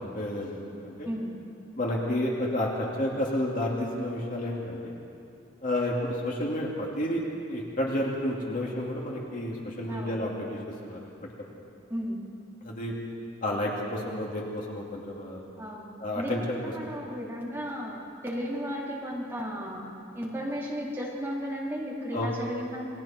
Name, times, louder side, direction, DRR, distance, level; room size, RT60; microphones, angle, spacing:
voice 1, 0.0-1.1 1.8-4.9 5.6-7.2 7.5-11.1 12.6-12.9 13.4-15.4 16.0-16.6 22.1-22.3, left 1 dB, 45° left, -3 dB, 2.7 m, -31 dB
voice 2, 9.9-10.2 11.9-12.2 15.6-15.9 16.1-16.3 16.6-19.8 20.1-22.8, equal, 10° right, -5 dB, 4.1 m, -34 dB
28.5 x 22.5 x 4.5 m, 2.6 s
head